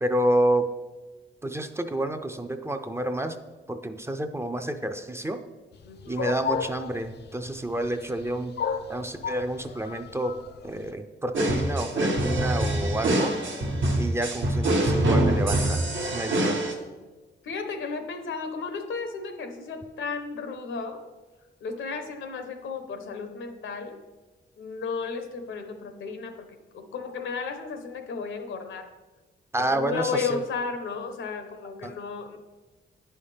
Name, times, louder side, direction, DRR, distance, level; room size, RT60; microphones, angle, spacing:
voice 1, 0.0-0.7 1.4-3.4 3.7-5.4 6.1-8.5 8.9-10.4 10.6-13.4 14.0-16.6 29.5-30.4 31.8-32.0, right 1 dB, 15° right, 7 dB, 0.4 m, -29 dB
voice 2, 5.8-6.4 17.4-21.0 21.6-24.0 24.6-26.5 26.7-28.9 29.6-32.4, left 5 dB, 85° left, 7 dB, 0.8 m, -34 dB
sound 1, 5.8-10.9, left 6 dB, 60° left, 0.4 m, -33 dB
sound 2, 11.3-16.7, right 1 dB, 80° right, 1.2 m, -24 dB
9.6 x 5.6 x 3.3 m, 1.2 s
wide cardioid pair, 125°, 19 cm